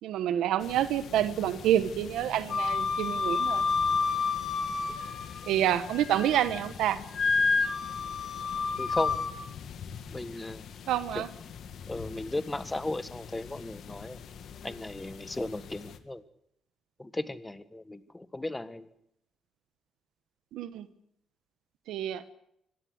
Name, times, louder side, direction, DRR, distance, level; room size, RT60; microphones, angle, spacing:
voice 1, 0.0-3.7 5.5-7.0 10.9-11.3 20.5-20.9 21.9-22.2, right 11 dB, 85° right, 12 dB, 1.1 m, -28 dB
sound 1, 0.6-16.0, left 7 dB, 70° left, 1.8 m, -45 dB
Wind instrument woodwind instrument, 2.5-5.5 5.9-6.6 7.1-9.3, left 4 dB, 50° left, 3.0 m, -29 dB
voice 2, 8.7-9.2 10.1-10.7 11.1-11.2 11.9-14.2 14.6-16.2 17.0-18.9, left 2 dB, 15° left, 12 dB, 1.5 m, -35 dB
25.0 x 16.5 x 8.0 m, 0.76 s
cardioid pair, 90°, 0 cm